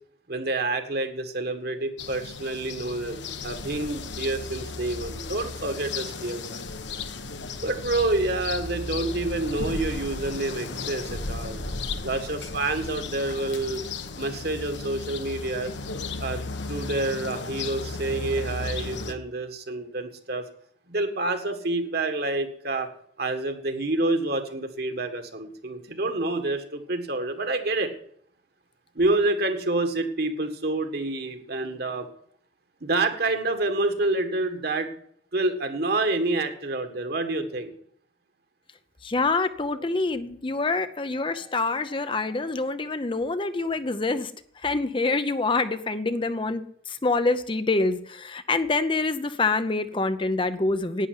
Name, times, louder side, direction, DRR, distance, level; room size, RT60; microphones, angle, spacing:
voice 1, 0.3-6.6 7.6-11.6 12.0-13.8 14.2-15.7 16.2-20.5 20.9-22.9 23.2-27.9 28.9-32.1 32.8-34.9 35.3-37.7, right 2 dB, 55° right, 6 dB, 1.8 m, -28 dB
sound 1, 2.0-19.1, left 3 dB, 70° left, 1.1 m, -35 dB
voice 2, 39.0-51.1, left 3 dB, 25° left, 11 dB, 0.6 m, -26 dB
11.0 x 9.4 x 9.6 m, 0.65 s
head